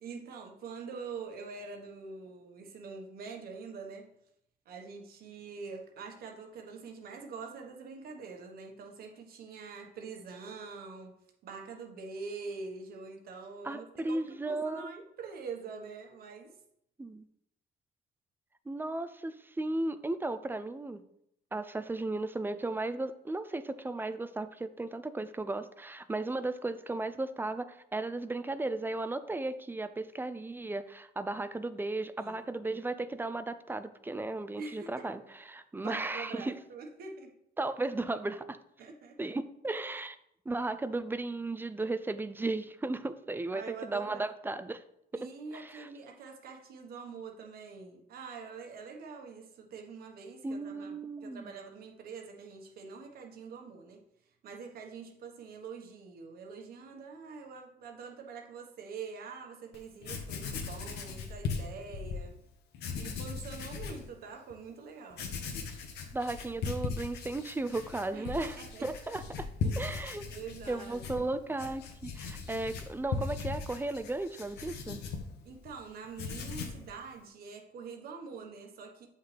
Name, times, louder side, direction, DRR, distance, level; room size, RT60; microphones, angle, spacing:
voice 1, 0.0-4.1 4.6-11.1 11.4-16.5 32.2-32.4 34.6-35.1 35.8-37.3 38.8-39.2 43.5-44.2 45.1-50.9 51.2-54.0 54.4-62.4 62.9-65.3 68.1-68.9 69.6-69.7 70.3-71.3 75.4-79.1, right 5 dB, 65° right, 2 dB, 1.4 m, -45 dB
voice 2, 13.6-14.9 17.0-17.2 18.7-21.0 21.5-36.5 37.6-38.6 39.2-40.2 40.5-44.8 45.1-45.3 45.5-45.9 50.4-51.5 66.1-68.5 68.8-69.5 69.8-70.3 70.7-75.0, right 2 dB, 10° right, 12 dB, 0.4 m, -35 dB
Writing, 59.7-59.8 60.0-62.2 62.7-64.0 64.5-64.6 65.1-75.7 76.0-76.9, left 5 dB, 80° left, 1.3 m, -38 dB
8.0 x 5.7 x 3.4 m, 0.76 s
cardioid pair, 110°, 17 cm